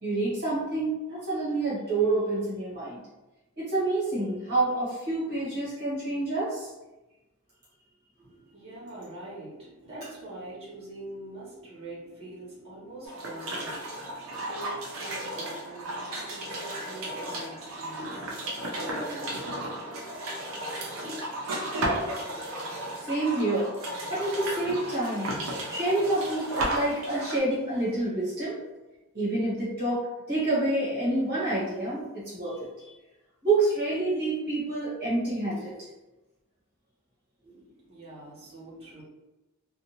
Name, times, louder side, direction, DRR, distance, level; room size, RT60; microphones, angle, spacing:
voice 1, 0.0-3.0 3.6-6.7 23.0-23.7 24.1-25.4 25.7-28.6 29.1-32.9 33.4-35.7, right 2 dB, 50° right, -9 dB, 1.0 m, -28 dB
voice 2, 8.2-21.9 22.6-22.7 37.4-39.0, right 1 dB, 30° right, -8 dB, 1.1 m, -44 dB
sound 1, 13.1-27.4, right 1 dB, 70° right, 0.6 m, -34 dB
2.6 x 2.2 x 2.8 m, 1.0 s
head